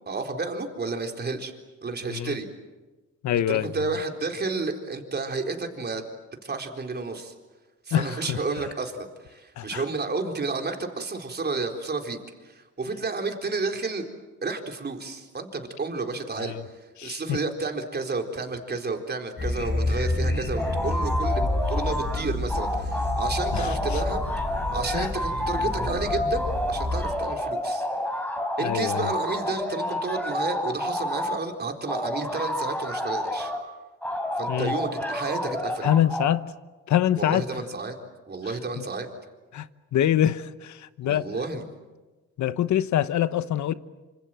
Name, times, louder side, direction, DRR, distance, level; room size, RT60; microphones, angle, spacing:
voice 1, 0.1-1.5 1.8-2.5 3.5-6.1 6.4-7.3 7.9-12.2 12.4-14.1 14.4-16.5 17.0-24.2 24.7-27.9 28.6-33.5 34.4-35.9 37.2-38.0 38.3-39.1 41.0-41.6, right 3 dB, 35° right, 4.1 m, -31 dB
voice 2, 3.2-3.7 7.9-8.4 9.6-9.8 16.4-16.6 17.0-17.4 23.5-24.0 24.9-25.1 28.6-29.1 34.5-34.7 35.8-36.5 36.9-37.5 38.8-38.9 39.5-39.7 39.9-41.3 42.4-43.7, left 11 dB, 70° left, 1.1 m, -25 dB
sound 1, 19.4-27.1, left 1 dB, 35° left, 5.8 m, -29 dB
sound 2, 20.6-22.2 22.5-31.4 31.9-33.6 34.0-36.3, left 1 dB, 5° left, 4.3 m, -29 dB
27.5 x 26.5 x 7.7 m
cardioid pair, 90°, 30 cm